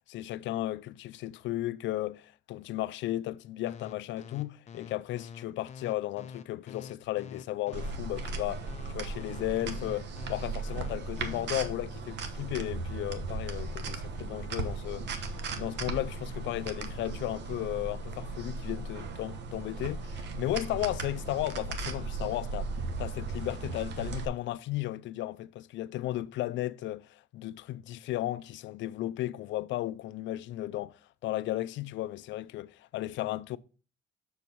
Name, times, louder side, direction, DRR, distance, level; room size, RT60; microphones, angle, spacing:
voice 1, 0.1-8.7 8.9-22.7 23.0-33.6, left 15 dB, 80° left, 0.4 m, -35 dB
sound 1, 3.7-11.4, left 6 dB, 35° left, 0.7 m, -46 dB
sound 2, 7.7-24.2, right 3 dB, 70° right, 1.1 m, -37 dB
7.0 x 4.6 x 5.3 m
cardioid pair, 145°, 19 cm